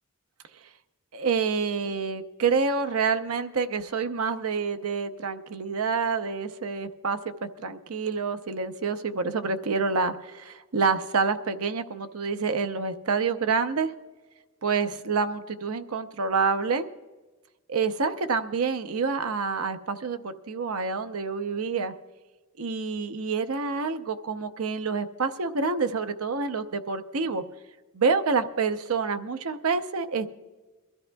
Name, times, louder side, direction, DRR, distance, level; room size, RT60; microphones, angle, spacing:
voice 1, 1.1-13.9 14.6-16.9 17.7-21.9 22.6-27.4 27.9-30.3, right 5 dB, 85° right, 9 dB, 0.7 m, -27 dB
23.5 x 13.5 x 2.3 m, 1.3 s
head